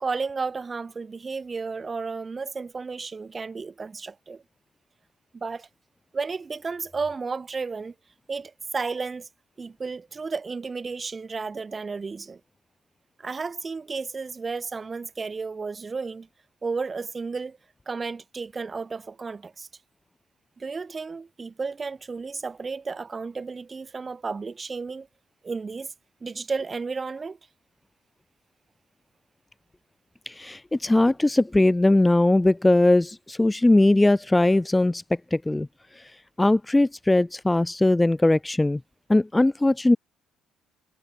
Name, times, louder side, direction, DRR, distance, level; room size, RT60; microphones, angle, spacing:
voice 1, 0.0-4.4 5.3-5.7 6.1-7.9 8.3-9.3 9.6-12.4 13.2-16.3 16.6-17.6 17.9-19.7 20.6-25.1 25.4-25.9 26.2-27.4, right 4 dB, 25° right, 0.8 m, -33 dB
voice 2, 30.3-35.0 35.3-35.7 36.4-38.8 39.1-40.0, left 2 dB, 10° left, 0.5 m, -20 dB
cardioid pair, 125°, 0 cm